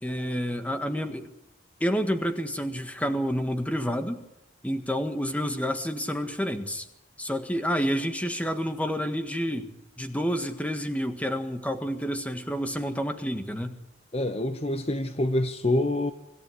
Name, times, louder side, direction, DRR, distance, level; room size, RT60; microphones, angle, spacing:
voice 1, 0.0-1.3 1.8-4.2 4.6-6.9 7.2-9.7 10.0-13.7, equal, 5° left, 7 dB, 1.6 m, -29 dB
voice 2, 14.1-16.1, left 1 dB, 30° left, 9 dB, 1.0 m, -26 dB
26.0 x 13.5 x 9.9 m, 0.92 s
head